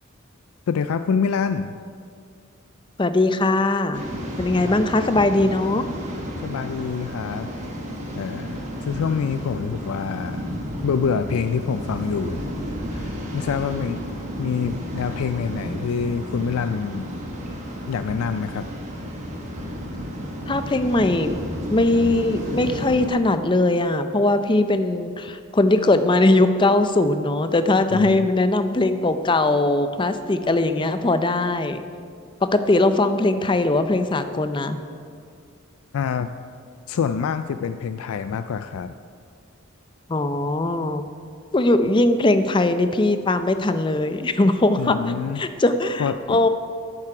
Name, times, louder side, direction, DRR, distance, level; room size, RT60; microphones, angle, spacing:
voice 1, 0.7-1.8 4.7-4.8 6.4-7.5 8.2-10.5 10.8-12.4 12.9-14.0 14.4-17.1 17.9-18.6 27.9-28.3 35.9-36.3 36.9-38.9 44.8-45.4 46.0-46.4, left 6 dB, 80° left, 10 dB, 0.3 m, -26 dB
voice 2, 3.0-4.0 4.4-5.8 20.5-21.3 21.7-31.8 32.5-34.8 40.1-41.0 41.5-45.0 45.4-46.5, left 2 dB, 20° left, 10 dB, 0.5 m, -20 dB
Waves surf, 3.9-23.1, equal, 35° right, 1.5 m, -32 dB
11.0 x 9.0 x 4.9 m, 2.3 s
head